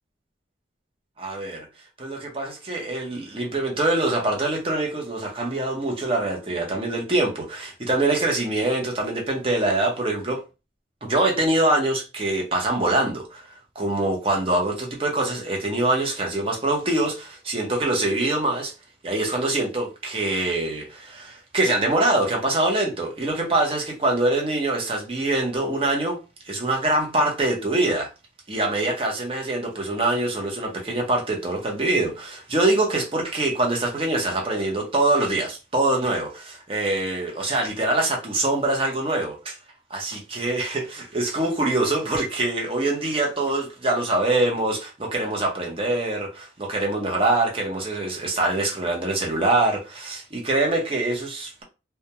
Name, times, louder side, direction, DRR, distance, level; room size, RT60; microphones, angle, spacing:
voice 1, 1.2-1.7 2.0-10.4 11.0-13.5 13.8-18.7 19.0-26.2 26.5-28.1 28.5-39.6 39.9-51.6, right 2 dB, 30° right, 0.7 m, -24 dB
2.3 x 2.0 x 2.8 m
head